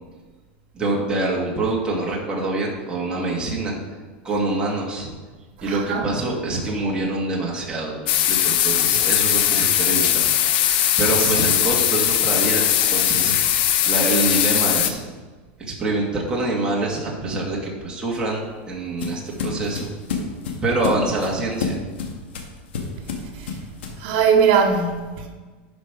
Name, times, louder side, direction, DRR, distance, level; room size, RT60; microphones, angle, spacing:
voice 1, 0.7-3.8 4.2-5.1 5.6-10.3 10.6-13.6 13.9-15.0 15.6-19.9 20.6-21.8, right 2 dB, 15° right, 2.0 m, -25 dB
voice 2, 5.6-6.1 11.2-11.3 23.3-23.5 24.0-25.3, right 6 dB, 60° right, 2.2 m, -20 dB
sound 1, 8.1-14.9, left 11 dB, 65° left, 0.8 m, -19 dB
sound 2, 18.0-24.1, left 5 dB, 85° left, 1.8 m, -30 dB
11.0 x 5.3 x 5.2 m
supercardioid pair, 140°, 6 cm